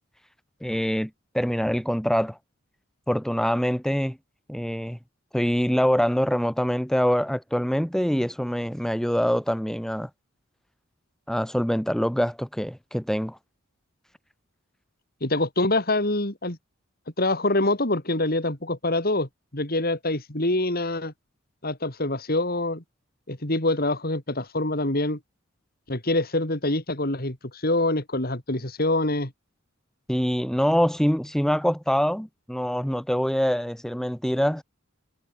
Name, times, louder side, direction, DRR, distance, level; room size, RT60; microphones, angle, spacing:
voice 1, 0.6-1.1 1.3-2.4 3.1-4.2 4.5-5.0 5.3-10.1 11.3-13.4 30.1-34.6, equal, ahead, 1.0 m, -24 dB
voice 2, 15.2-16.6 17.2-21.1 21.6-22.8 23.3-25.2 25.9-29.3, left 2 dB, 45° left, 3.8 m, -25 dB
head